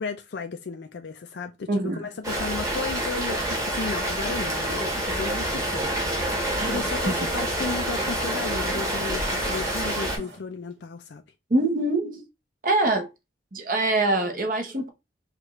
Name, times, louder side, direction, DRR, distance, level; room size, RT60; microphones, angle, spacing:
voice 1, 0.0-11.2, left 5 dB, 75° left, 0.4 m, -34 dB
voice 2, 1.7-2.1 6.6-6.8 7.1-7.2 11.5-12.2 12.6-13.1 13.5-14.9, right 2 dB, 45° right, 0.9 m, -24 dB
Rain, 2.2-10.2, right 1 dB, 20° right, 1.2 m, -27 dB
sound 1, 6.2-10.7, right 2 dB, 70° right, 1.8 m, -44 dB
4.7 x 2.4 x 3.0 m
head